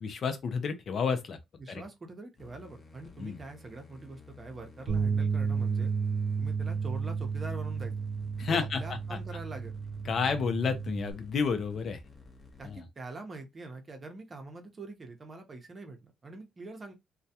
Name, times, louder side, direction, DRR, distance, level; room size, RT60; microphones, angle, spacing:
voice 1, 0.0-1.4 1.7-1.8 3.2-3.4 8.4-9.0 10.1-12.0 12.6-12.8, left 5 dB, 55° left, 0.5 m, -30 dB
voice 2, 1.6-5.9 6.4-7.9 8.5-9.7 12.6-16.9, right 3 dB, 35° right, 0.7 m, -44 dB
sound 1, 2.4-12.8, left 3 dB, 30° left, 0.8 m, -53 dB
sound 2, 4.9-11.1, right 5 dB, 80° right, 0.6 m, -32 dB
2.2 x 2.2 x 2.7 m
cardioid pair, 90°, 0 cm